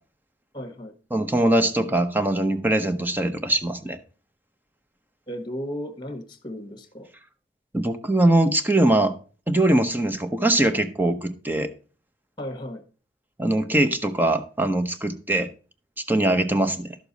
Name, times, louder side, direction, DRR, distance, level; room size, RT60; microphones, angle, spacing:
voice 1, 0.5-0.9 5.3-7.1 12.4-12.8, equal, 25° left, 1.3 m, -35 dB
voice 2, 1.1-4.0 7.7-9.2 9.5-11.7 13.4-15.5 16.1-17.0, right 1 dB, 10° right, 0.8 m, -22 dB
12.0 x 6.7 x 4.0 m
head